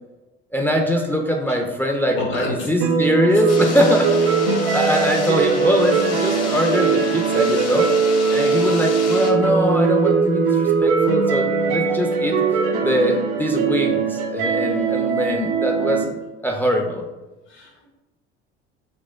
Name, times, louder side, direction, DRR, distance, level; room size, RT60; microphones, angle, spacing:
voice 1, 0.5-4.4 4.7-7.9 8.3-12.4 12.8-16.1 16.4-17.1, equal, 5° left, 1 dB, 0.3 m, -22 dB
voice 2, 2.1-2.7 15.7-16.1 17.5-17.9, left 1 dB, 70° left, -3 dB, 1.2 m, -29 dB
sound 1, 2.8-16.0, right 5 dB, 70° right, 0.5 m, -20 dB
sound 2, 3.5-9.3, left 5 dB, 50° left, 0.8 m, -31 dB
4.2 x 2.1 x 2.3 m, 1.1 s
hypercardioid pair, 65°, 32 cm